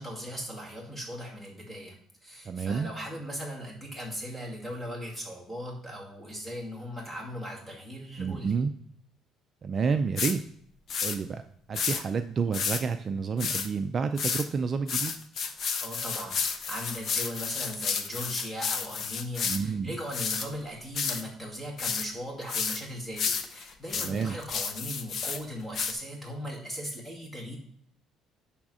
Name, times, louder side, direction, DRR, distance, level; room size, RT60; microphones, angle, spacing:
voice 1, 0.0-1.9 2.2-8.5 15.6-27.6, equal, 10° left, -2 dB, 2.3 m, -38 dB
voice 2, 2.4-2.9 8.2-8.7 9.6-10.4 11.0-11.4 11.7-15.1 19.4-20.0 24.0-24.4, right 5 dB, 35° right, 8 dB, 0.4 m, -29 dB
sound 1, 10.2-10.3 10.9-11.2 11.7-12.0 12.5-12.8 13.4-13.7 14.2-14.4 14.9-19.6 20.1-20.5 20.9-21.2 21.8-22.1 22.5-22.8 23.2-25.4 25.7-25.9, left 6 dB, 45° left, 0.7 m, -31 dB
10.5 x 3.6 x 6.2 m, 0.65 s
cardioid pair, 145°, 0 cm